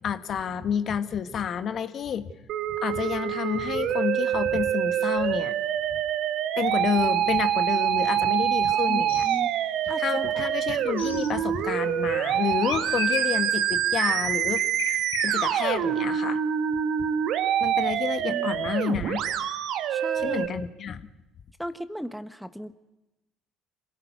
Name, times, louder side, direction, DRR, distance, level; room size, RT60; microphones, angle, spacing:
voice 1, 0.0-2.3 2.8-5.5 6.6-9.3 10.0-16.4 17.6-19.2 20.1-21.1, left 7 dB, 50° left, 9 dB, 1.5 m, -29 dB
Musical instrument, 2.5-20.5, right 10 dB, 60° right, 1.7 m, -26 dB
sound 1, 8.5-8.6 9.0-9.4 9.8-10.0 11.0-11.4 12.6-13.6 14.6-15.7, left 9 dB, 85° left, 1.6 m, -37 dB
voice 2, 8.9-9.5 9.9-10.3 18.3-18.5 19.9-20.4 21.6-22.7, equal, ahead, 11 dB, 1.3 m, -36 dB
26.5 x 17.0 x 9.3 m, 1.0 s
hypercardioid pair, 60°, 0 cm